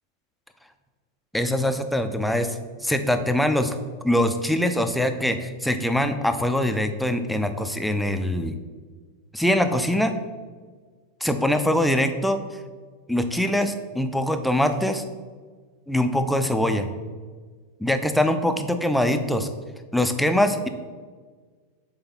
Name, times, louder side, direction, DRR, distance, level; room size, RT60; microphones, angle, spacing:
voice 1, 1.3-3.7 4.0-8.5 9.3-10.1 11.2-12.4 13.1-15.0 15.9-16.9 17.8-19.5 19.9-20.7, left 1 dB, ahead, 7 dB, 0.5 m, -23 dB
7.7 x 3.4 x 4.1 m, 1.5 s
figure-of-eight pair, 90°, 0 cm